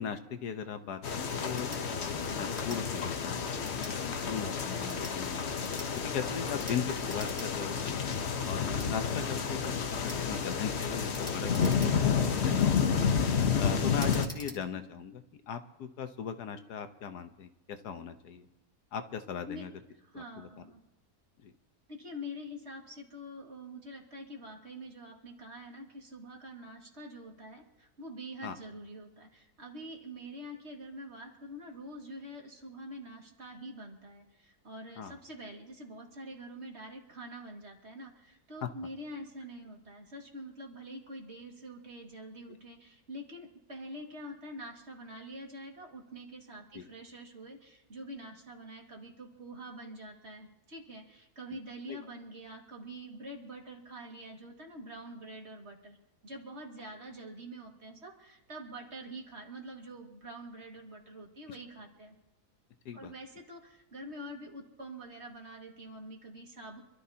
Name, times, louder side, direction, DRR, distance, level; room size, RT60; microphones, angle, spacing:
voice 1, 0.0-1.7 2.0-5.4 6.0-8.0 8.4-9.7 10.0-13.0 13.6-18.5 18.9-19.7 20.1-20.5 21.4-21.5 28.4-28.5 35.0-35.2 38.6-38.7 46.7-46.8 51.9-52.0 61.5-61.6 62.8-63.1, left 7 dB, 80° left, 9 dB, 1.5 m, -39 dB
sound 1, 1.0-14.3, left 6 dB, 50° left, 1.1 m, -30 dB
sound 2, 1.5-1.8 2.5-2.8 3.6-3.9 4.7-5.2 5.6-5.9 6.6-6.8 7.1-7.5 7.8-7.9 8.7-8.9 10.0-10.2 11.1-12.2 12.7-13.0 14.0-14.6, equal, 5° left, 2.2 m, -46 dB
voice 2, 20.1-20.8 21.9-56.0 56.2-62.2 62.9-66.8, equal, 45° right, 1 dB, 2.3 m, -46 dB
26.5 x 13.0 x 2.8 m, 0.98 s
omnidirectional pair, 1.7 m